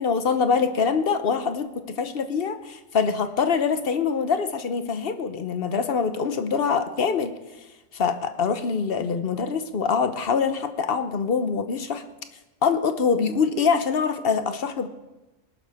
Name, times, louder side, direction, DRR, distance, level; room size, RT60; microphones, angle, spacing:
voice 1, 0.0-7.4 7.9-12.0 12.6-14.9, left 5 dB, 50° left, 9 dB, 0.9 m, -24 dB
18.5 x 11.5 x 3.5 m, 1.1 s
omnidirectional pair, 1.5 m